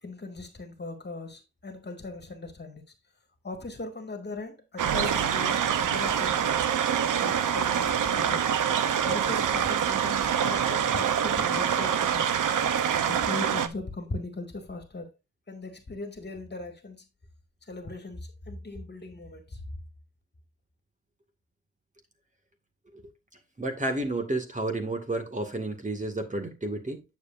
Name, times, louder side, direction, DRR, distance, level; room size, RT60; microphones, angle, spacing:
voice 1, 0.0-2.9 3.4-6.6 7.2-8.5 9.0-12.4 13.1-15.1 15.5-17.1 17.7-19.6, left 2 dB, 30° left, 2.2 m, -38 dB
sound 1, 4.8-13.7, right 8 dB, 70° right, 0.9 m, -25 dB
voice 2, 23.6-27.0, right 2 dB, 25° right, 2.0 m, -31 dB
9.9 x 7.3 x 2.6 m
cardioid pair, 75°, 32 cm